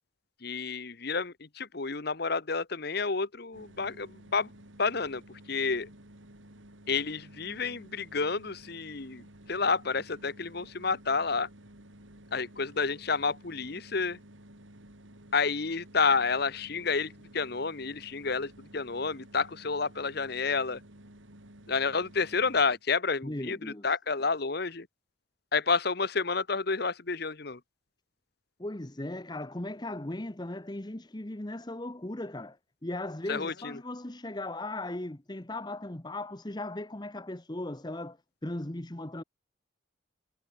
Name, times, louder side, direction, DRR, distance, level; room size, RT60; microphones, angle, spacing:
voice 1, 0.4-4.5 4.8-5.2 5.5-5.9 6.9-11.5 12.3-14.2 15.3-20.8 21.7-24.9 25.5-27.6 33.3-33.8, left 4 dB, 50° left, 1.1 m, -30 dB
sound 1, 3.5-22.8, right 1 dB, 75° right, 5.1 m, -53 dB
voice 2, 23.2-23.9 28.6-32.6 32.8-38.2 38.4-39.2, left 1 dB, 20° left, 1.0 m, -37 dB
head